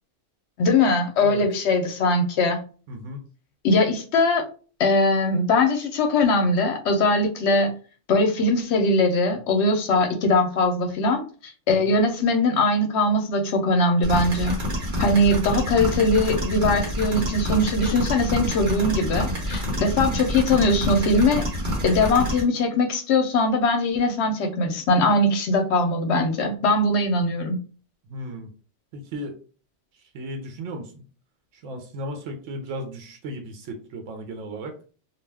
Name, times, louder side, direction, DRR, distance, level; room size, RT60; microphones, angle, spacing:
voice 1, 0.6-2.6 3.6-4.5 4.8-7.7 8.1-14.6 15.0-21.4 21.8-27.6, left 2 dB, 70° left, 5 dB, 0.8 m, -21 dB
voice 2, 2.9-3.3 11.7-11.9 15.0-15.3 20.0-20.3 28.1-28.5 28.9-29.4 29.9-31.0 31.5-34.7, right 1 dB, 85° right, 3 dB, 0.9 m, -36 dB
sound 1, 14.0-22.4, equal, 45° right, 1.2 m, -27 dB
2.4 x 2.2 x 3.2 m, 0.38 s
omnidirectional pair, 1.2 m